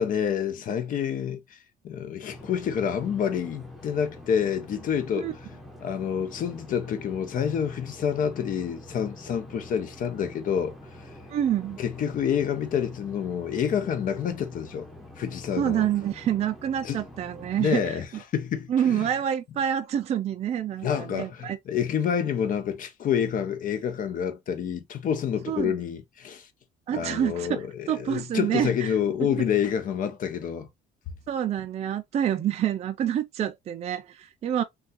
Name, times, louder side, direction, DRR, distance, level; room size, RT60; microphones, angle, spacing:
voice 1, 0.0-1.6 1.8-5.3 5.8-10.8 11.8-14.9 15.2-15.9 16.8-17.0 17.6-18.1 18.3-19.1 20.8-26.5 26.9-30.7, left 8 dB, 55° left, 0.7 m, -28 dB
sound 1, 2.3-17.7, left 1 dB, ahead, 0.9 m, -46 dB
voice 2, 11.3-11.8 15.6-18.0 18.7-21.6 25.5-25.7 26.9-28.9 31.3-34.6, right 10 dB, 40° right, 0.4 m, -27 dB
3.3 x 2.3 x 2.7 m
cardioid pair, 110°, 17 cm